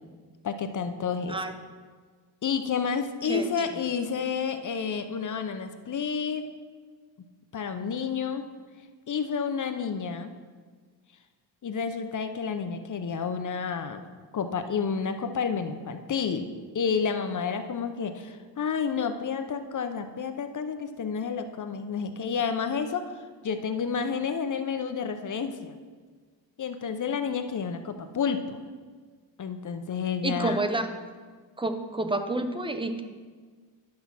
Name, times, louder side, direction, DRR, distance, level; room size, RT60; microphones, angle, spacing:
voice 1, 0.4-1.4 2.4-6.5 7.5-8.5 9.1-10.3 11.6-14.0 14.3-16.5 16.7-23.1 23.4-25.7 26.6-28.6 29.4-30.6, left 6 dB, 40° left, 8 dB, 0.7 m, -30 dB
voice 2, 3.2-3.8 30.2-30.9 31.6-33.0, right 2 dB, 10° right, 7 dB, 0.6 m, -29 dB
10.5 x 5.4 x 6.0 m, 1.5 s
cardioid pair, 115°, 45 cm